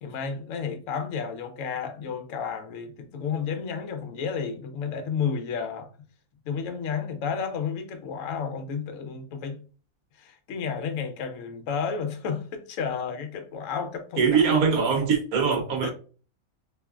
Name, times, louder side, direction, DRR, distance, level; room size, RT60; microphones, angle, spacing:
voice 1, 0.0-5.9 6.5-9.6 10.2-14.3 15.8-15.9, left 6 dB, 65° left, 1.0 m, -31 dB
voice 2, 14.2-15.9, right 6 dB, 75° right, 1.3 m, -22 dB
3.3 x 3.1 x 2.4 m
omnidirectional pair, 1.5 m